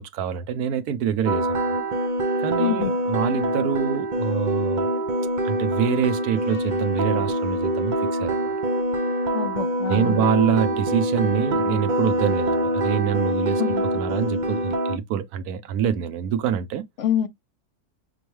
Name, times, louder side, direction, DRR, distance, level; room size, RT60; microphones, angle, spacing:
voice 1, 0.0-1.6 2.4-4.9 5.4-8.5 9.9-16.9, right 9 dB, 90° right, 1.2 m, -26 dB
sound 1, 1.2-15.0, right 1 dB, 50° right, 0.5 m, -24 dB
voice 2, 2.6-2.9 9.3-10.2 13.6-13.8 17.0-17.3, left 9 dB, 60° left, 0.9 m, -25 dB
Trumpet, 6.4-10.8, left 2 dB, 30° left, 1.7 m, -50 dB
6.1 x 2.2 x 3.1 m
omnidirectional pair, 1.6 m